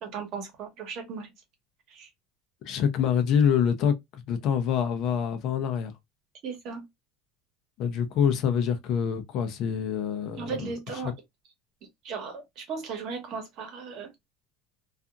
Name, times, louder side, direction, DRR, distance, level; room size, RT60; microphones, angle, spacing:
voice 1, 0.0-1.3 1.9-2.1 6.4-6.8 10.4-11.1 12.0-14.1, right 5 dB, 45° right, 1.0 m, -36 dB
voice 2, 2.6-5.9 7.8-10.7 11.0-11.1, left 8 dB, 45° left, 0.5 m, -26 dB
2.7 x 2.4 x 2.4 m
cardioid pair, 165°, 0 cm